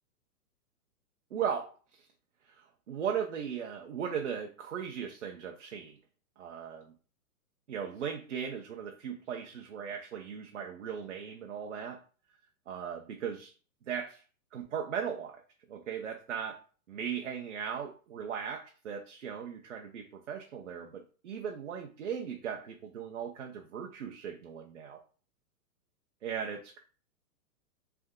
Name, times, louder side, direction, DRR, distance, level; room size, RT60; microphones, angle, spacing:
voice 1, 1.3-1.7 2.5-6.0 6.4-6.9 7.7-12.0 12.7-13.5 13.9-14.2 14.5-15.4 15.7-16.6 16.9-25.0 26.2-26.8, right 7 dB, 50° right, 3 dB, 0.6 m, -37 dB
3.5 x 3.4 x 3.7 m, 0.39 s
hypercardioid pair, 180°, 46 cm